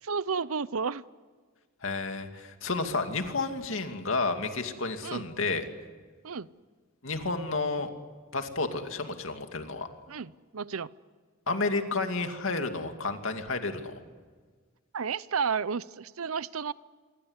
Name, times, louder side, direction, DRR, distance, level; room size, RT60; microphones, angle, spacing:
voice 1, 0.0-1.0 5.0-5.3 6.2-6.5 10.1-10.9 14.9-16.7, right 5 dB, 80° right, 18 dB, 0.7 m, -32 dB
voice 2, 1.8-5.6 7.0-7.9 8.3-9.9 11.5-14.0, left 3 dB, 65° left, 6 dB, 2.6 m, -31 dB
26.5 x 24.0 x 8.2 m, 1.5 s
head